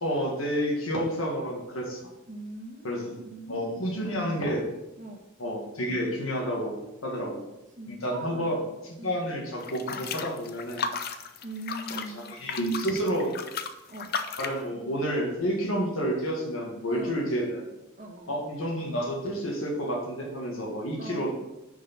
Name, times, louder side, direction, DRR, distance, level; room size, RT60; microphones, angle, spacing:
voice 1, 0.0-2.1 2.8-3.1 3.5-4.7 5.4-6.8 7.0-7.4 7.9-8.6 8.8-10.8 11.9-13.3 14.4-17.6 18.3-21.3, equal, 90° left, -1 dB, 1.8 m, -30 dB
voice 2, 2.3-3.5 5.0-5.2 7.1-7.3 7.8-8.7 9.0-9.2 11.4-12.3 13.9-14.1 16.9-17.3 18.0-18.4 21.0-21.3, right 2 dB, 40° right, 2 dB, 1.2 m, -41 dB
sound 1, 9.6-14.6, left 5 dB, 50° left, 0.6 m, -35 dB
6.4 x 5.0 x 5.9 m, 0.96 s
head